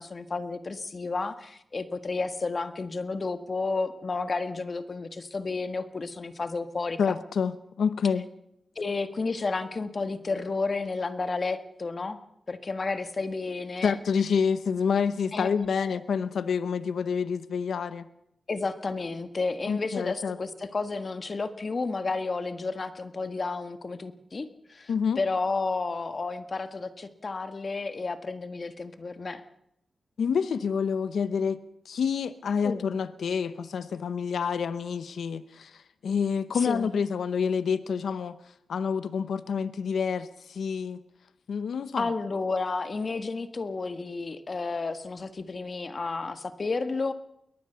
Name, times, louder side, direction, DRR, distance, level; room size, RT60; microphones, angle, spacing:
voice 1, 0.0-7.2 8.7-12.2 12.5-13.9 15.3-16.0 18.5-24.9 25.2-29.4 32.6-32.9 36.6-36.9 42.0-47.1, left 3 dB, 50° left, 10 dB, 1.6 m, -31 dB
voice 2, 7.0-8.2 13.8-18.1 19.7-20.4 24.9-25.2 30.2-31.6 31.9-38.4 38.7-41.0 41.5-42.0, left 6 dB, 85° left, 13 dB, 0.8 m, -28 dB
22.0 x 19.5 x 6.9 m, 0.81 s
cardioid pair, 65°, 0 cm